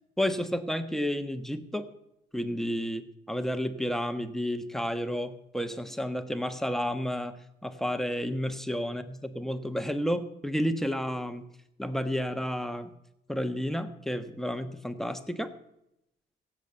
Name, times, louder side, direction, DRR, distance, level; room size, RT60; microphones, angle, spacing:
voice 1, 0.2-1.9 2.3-7.4 7.6-11.5 11.8-12.9 13.3-15.5, equal, ahead, 8 dB, 1.3 m, -31 dB
16.0 x 7.4 x 8.1 m, 0.82 s
cardioid pair, 90°, 20 cm